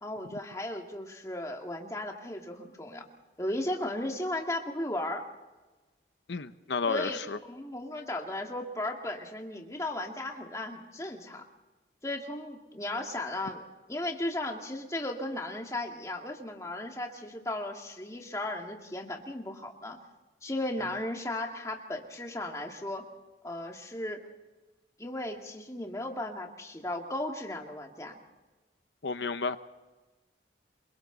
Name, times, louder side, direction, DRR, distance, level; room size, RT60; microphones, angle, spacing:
voice 1, 0.0-3.0 3.4-5.3 6.9-11.4 12.0-20.0 20.4-23.1 23.4-24.2 25.0-28.2, left 1 dB, 15° left, 2 dB, 2.2 m, -36 dB
voice 2, 6.3-7.4 29.0-29.6, left 4 dB, 85° left, 11 dB, 0.8 m, -31 dB
28.0 x 23.5 x 4.0 m, 1.2 s
head